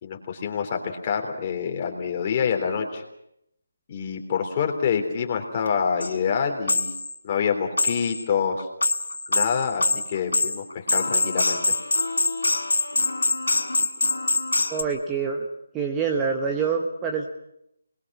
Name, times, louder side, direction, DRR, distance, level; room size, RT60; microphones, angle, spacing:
voice 1, 0.0-3.0 3.9-7.0 7.2-8.7 9.3-11.7, left 6 dB, 30° left, 3 dB, 3.5 m, -26 dB
sound 1, 5.7-5.8 6.0-6.1 6.7-7.1 7.8-8.2 8.6-14.8, left 2 dB, 85° left, 2.0 m, -24 dB
voice 2, 14.7-15.5 15.7-17.3, right 5 dB, 10° right, 2 dB, 1.2 m, -26 dB
26.0 x 21.0 x 6.1 m, 0.79 s
figure-of-eight pair, 165°, 0 cm